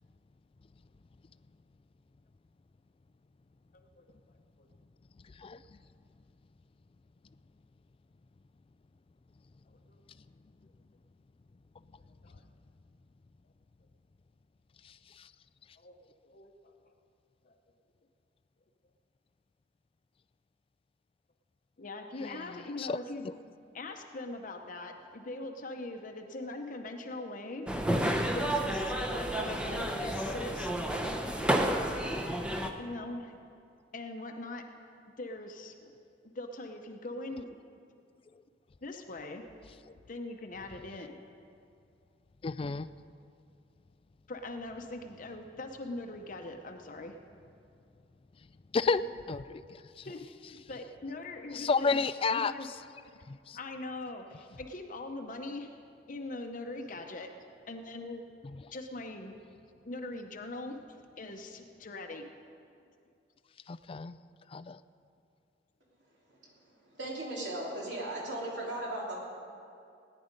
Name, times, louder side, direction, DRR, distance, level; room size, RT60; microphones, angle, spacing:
voice 1, 3.7-4.0 4.6-4.7 9.9-10.0 12.2-12.4 15.8-16.7 17.4-17.5 21.8-23.3 23.7-27.7 28.3-30.7 32.8-33.3 33.9-34.6 35.2-35.9 36.2-37.6 38.8-39.5 40.1-41.2 44.3-47.2 50.0-50.3 50.7-52.0 52.3-52.7 53.1-53.2 53.5-55.8 56.1-57.3 57.7-58.2 58.7-59.4 59.8-62.3, left 2 dB, 45° left, 3 dB, 0.8 m, -41 dB
voice 2, 22.2-23.0 32.2-32.6 42.4-42.9 48.7-50.1 51.5-52.5 53.3-53.6 63.7-64.2 64.5-64.8, left 4 dB, 30° left, 14 dB, 0.3 m, -32 dB
sound 1, 27.7-32.7, right 1 dB, 5° right, 0.8 m, -31 dB
voice 3, 66.9-69.2, right 1 dB, 70° right, -4 dB, 3.3 m, -37 dB
18.0 x 10.0 x 5.2 m, 2.4 s
head